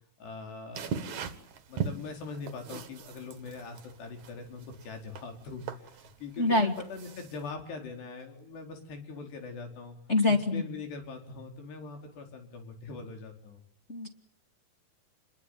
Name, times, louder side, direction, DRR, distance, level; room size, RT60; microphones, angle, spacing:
voice 1, 0.2-1.4 1.7-10.0 10.3-13.6, left 4 dB, 70° left, 4 dB, 6.6 m, -42 dB
sound 1, 0.7-7.5, right 7 dB, 55° right, 2.6 m, -40 dB
voice 2, 6.4-6.7 10.1-10.6 13.9-14.1, left 2 dB, 25° left, 3 dB, 1.5 m, -25 dB
28.5 x 22.0 x 9.4 m, 0.66 s
omnidirectional pair, 5.1 m